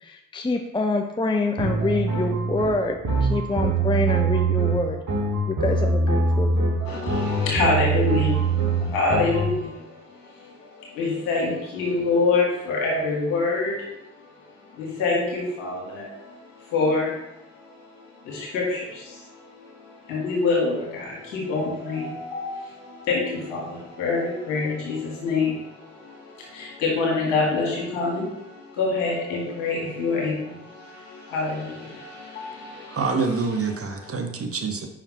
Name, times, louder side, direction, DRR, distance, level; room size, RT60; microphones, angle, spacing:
voice 1, 0.0-5.0 5.5-6.7, left 2 dB, 15° left, 4 dB, 0.5 m, -26 dB
sound 1, 1.6-9.5, right 3 dB, 60° right, 2.3 m, -23 dB
voice 2, 6.9-33.3 33.6-34.1, left 3 dB, 90° left, -3 dB, 1.8 m, -27 dB
voice 3, 32.9-34.9, right 4 dB, 40° right, 5 dB, 1.1 m, -26 dB
5.2 x 5.0 x 4.2 m, 0.89 s
hypercardioid pair, 45°, 37 cm